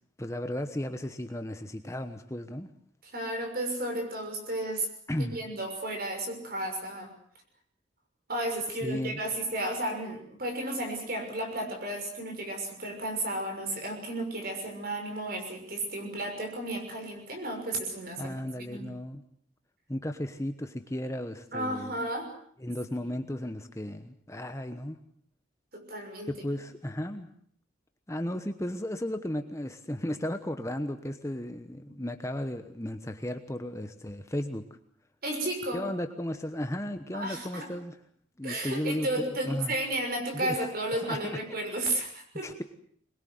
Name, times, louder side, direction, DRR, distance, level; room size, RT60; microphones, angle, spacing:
voice 1, 0.2-2.7 5.1-5.4 8.8-9.2 18.2-19.2 19.9-21.9 22.6-25.0 26.3-27.3 28.1-34.6 35.7-38.0 38.4-39.1 39.5-39.7 40.3-40.6 41.0-41.2 42.4-42.6, left 1 dB, 15° left, 8 dB, 1.1 m, -34 dB
voice 2, 3.0-4.9 5.2-7.1 8.3-18.9 21.5-22.3 23.0-23.1 25.7-26.3 31.9-32.0 35.2-35.8 37.1-37.7 38.4-42.6, right 1 dB, 50° right, 4 dB, 6.3 m, -33 dB
23.5 x 21.5 x 7.9 m, 0.63 s
head